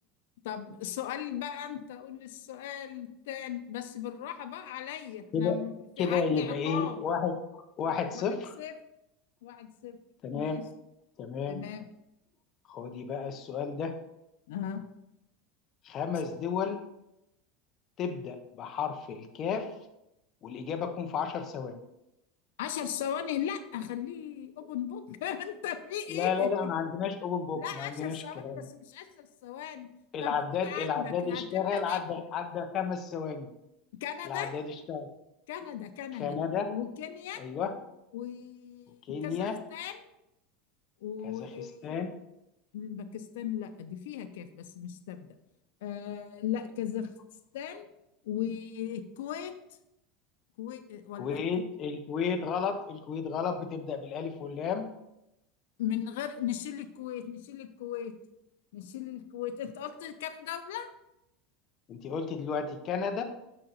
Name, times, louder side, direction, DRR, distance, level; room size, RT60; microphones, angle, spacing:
voice 1, 0.4-7.0 8.1-8.8 9.4-10.0 10.3-10.7 11.5-11.9 14.5-14.9 16.1-16.2 22.6-26.5 27.5-29.9 30.2-32.1 34.0-34.5 35.5-36.4 36.7-37.4 38.1-40.1 41.0-41.9 42.7-45.3 45.8-47.1 47.5-47.9 48.2-49.6 50.6-51.4 55.8-58.1 58.7-60.9, left 10 dB, 85° left, 9 dB, 0.5 m, -37 dB
voice 2, 6.0-7.4 7.8-8.5 10.2-10.7 11.2-11.6 12.7-14.0 15.8-16.8 18.0-19.7 20.4-21.8 26.1-28.7 30.1-33.5 34.2-35.1 36.1-36.7 37.4-37.7 39.1-39.6 41.2-42.1 51.2-54.9 61.9-63.2, left 6 dB, 30° left, 5 dB, 0.5 m, -32 dB
6.4 x 4.3 x 3.9 m, 0.86 s
supercardioid pair, 180°, 0 cm